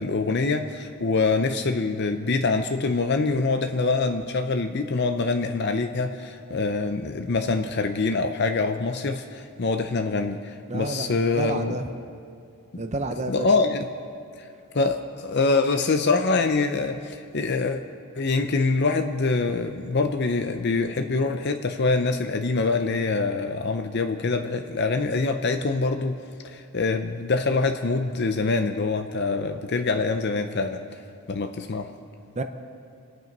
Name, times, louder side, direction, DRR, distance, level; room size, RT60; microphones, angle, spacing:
voice 1, 0.0-11.7 13.1-13.9 14.7-17.8 18.2-26.2 26.4-30.8 31.3-31.9, left 3 dB, 50° left, 7 dB, 0.6 m, -25 dB
voice 2, 10.7-11.9 12.8-13.5 32.4-32.5, right 2 dB, 30° right, 7 dB, 0.6 m, -30 dB
26.0 x 8.9 x 5.3 m, 2.4 s
head